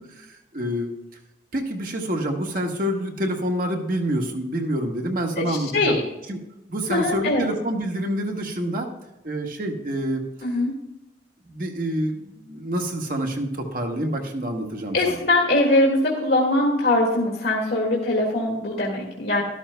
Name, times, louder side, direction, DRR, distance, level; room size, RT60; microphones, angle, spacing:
voice 1, 0.5-0.9 1.5-6.0 6.3-6.4 6.7-8.9 9.2-10.2 11.5-15.2, right 1 dB, 55° right, 2 dB, 1.4 m, -27 dB
voice 2, 5.4-6.0 6.9-7.5 10.4-10.7 14.9-19.4, left 2 dB, 80° left, -3 dB, 1.8 m, -22 dB
13.0 x 12.5 x 2.2 m, 0.95 s
head